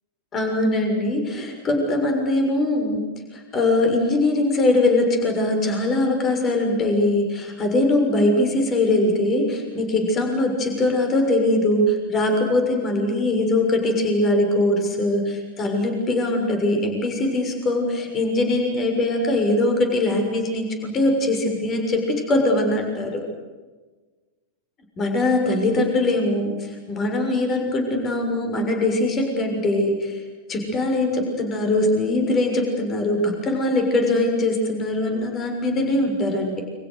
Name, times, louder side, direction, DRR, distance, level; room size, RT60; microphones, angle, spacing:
voice 1, 0.3-3.0 3.3-23.2 25.0-30.2 30.5-36.6, left 2 dB, 25° left, 4 dB, 6.7 m, -21 dB
29.5 x 26.0 x 6.7 m, 1.3 s
figure-of-eight pair, 90°, 0 cm